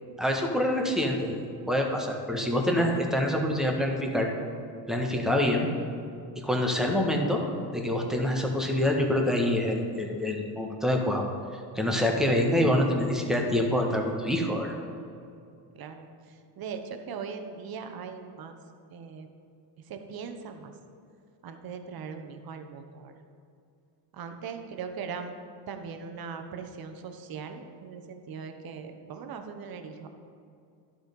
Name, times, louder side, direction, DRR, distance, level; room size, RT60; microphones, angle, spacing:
voice 1, 0.2-1.4 1.7-4.3 4.9-5.7 6.4-7.4 7.7-11.2 11.5-14.7, left 1 dB, ahead, 0 dB, 1.4 m, -26 dB
voice 2, 15.7-18.5 18.9-19.3 19.9-20.7 21.4-23.1 24.1-25.3 25.7-30.1, right 6 dB, 45° right, 6 dB, 1.0 m, -40 dB
11.5 x 4.4 x 5.3 m, 2.5 s
supercardioid pair, 80°, 49 cm